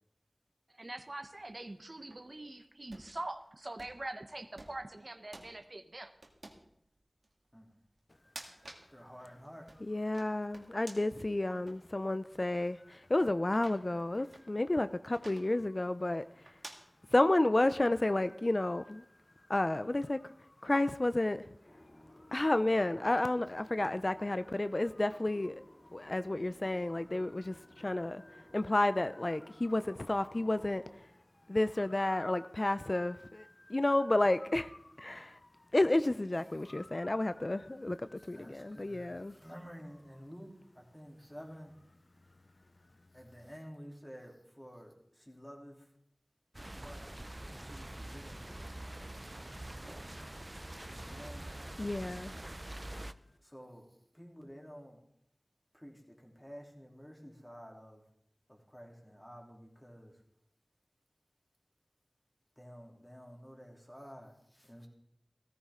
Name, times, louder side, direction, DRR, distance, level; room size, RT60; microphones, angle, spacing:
voice 1, 0.8-6.1, right 2 dB, 55° right, 0.8 m, -43 dB
sound 1, 1.3-2.2 2.8-3.1 3.8-4.1 4.6-4.9 5.3-5.5 6.2-6.6 7.2-7.3 8.1-8.9 9.3-11.2 11.7-11.8 12.5-12.7 13.4-14.4 15.1-15.5 16.5-16.8, right 2 dB, 80° right, 1.8 m, -51 dB
voice 2, 8.9-9.7 38.3-40.5 40.7-41.7 43.1-45.8 46.7-47.2 47.5-48.5 50.9-51.5 53.4-53.8 54.1-55.0 55.7-58.0 58.5-60.1 62.6-64.9, equal, 15° left, 3.3 m, -51 dB
voice 3, 9.8-16.3 17.1-19.0 19.5-20.3 20.6-21.5 22.3-30.9 31.5-35.4 35.7-39.4 51.8-52.3, left 2 dB, 50° left, 0.5 m, -31 dB
sound 2, 21.6-31.0, left 1 dB, 70° left, 4.3 m, -58 dB
sound 3, 46.5-53.1, right 1 dB, 30° right, 0.5 m, -45 dB
16.0 x 14.0 x 3.7 m
wide cardioid pair, 45°, 0 cm